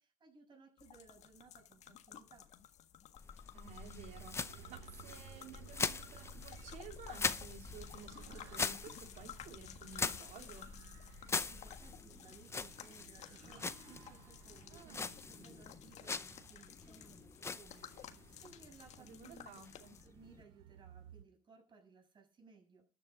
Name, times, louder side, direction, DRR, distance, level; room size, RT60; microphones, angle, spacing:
voice 1, 0.0-2.5 11.5-22.9, right 4 dB, 30° right, 3 dB, 6.8 m, -62 dB
sound 1, 0.8-20.1, left 10 dB, 50° left, 1.5 m, -55 dB
sound 2, 3.2-20.4, left 4 dB, 15° left, 0.7 m, -43 dB
voice 2, 3.5-10.7 14.7-15.1 19.0-19.9, right 6 dB, 55° right, 4 dB, 3.3 m, -54 dB
sound 3, 3.6-21.2, right 11 dB, 90° right, 1.3 m, -59 dB
13.0 x 9.8 x 5.3 m, 0.36 s
cardioid pair, 115°, 15 cm